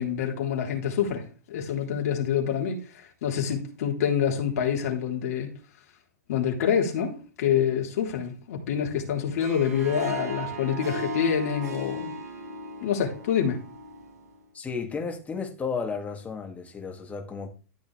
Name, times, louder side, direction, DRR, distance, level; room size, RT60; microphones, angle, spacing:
voice 1, 0.0-5.5 6.3-12.2 12.8-13.6, left 8 dB, 65° left, 3.6 m, -27 dB
Harp, 9.2-14.4, right 1 dB, 80° right, 5.7 m, -37 dB
voice 2, 14.5-17.5, left 5 dB, 15° left, 2.4 m, -33 dB
13.0 x 6.3 x 3.4 m
hypercardioid pair, 120°, 9 cm